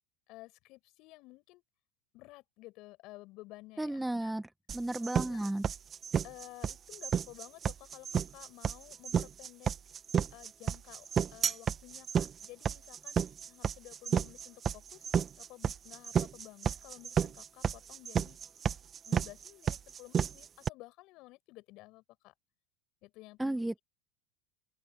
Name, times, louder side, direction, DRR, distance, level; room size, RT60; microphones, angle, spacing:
voice 1, 0.3-1.6 2.1-4.3 5.0-5.5 6.2-9.7 10.3-15.1 15.4-18.4 19.0-22.3 23.0-23.8, left 20 dB, 55° left, 7.6 m, -53 dB
voice 2, 3.8-5.6 23.4-23.8, right 1 dB, 5° right, 2.0 m, -34 dB
sound 1, 4.7-20.7, right 8 dB, 35° right, 1.8 m, -31 dB
open air
hypercardioid pair, 85°, 0 cm